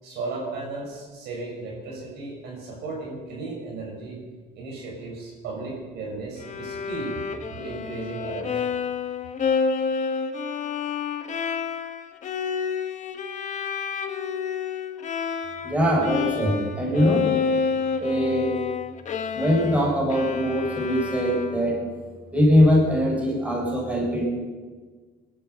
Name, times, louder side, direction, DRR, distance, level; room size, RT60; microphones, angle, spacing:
voice 1, 0.0-4.2 4.5-7.2 7.5-8.7, right 3 dB, 75° right, -1 dB, 6.3 m, -35 dB
Bowed string instrument, 6.4-15.8 16.0-21.8, left 5 dB, 45° left, 1.2 m, -29 dB
voice 2, 15.6-17.3 18.0-18.5 19.3-21.8 22.3-24.3, equal, 10° right, -3 dB, 5.9 m, -22 dB
20.0 x 12.5 x 5.6 m, 1.5 s
cardioid pair, 110°, 17 cm